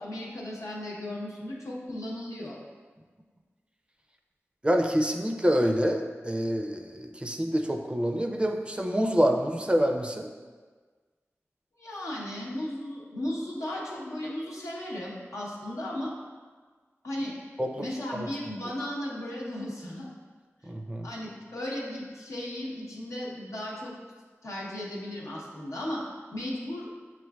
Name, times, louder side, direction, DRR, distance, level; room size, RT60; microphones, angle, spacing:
voice 1, 0.0-2.6 11.8-16.1 17.0-17.3 17.8-20.1 21.0-23.9 24.4-26.9, left 1 dB, 85° left, -4 dB, 0.9 m, -35 dB
voice 2, 4.6-10.3 17.6-17.9 18.2-18.3 20.7-21.1, equal, 20° right, 4 dB, 0.4 m, -26 dB
7.3 x 2.5 x 2.3 m, 1.5 s
wide cardioid pair, 50°, 5 cm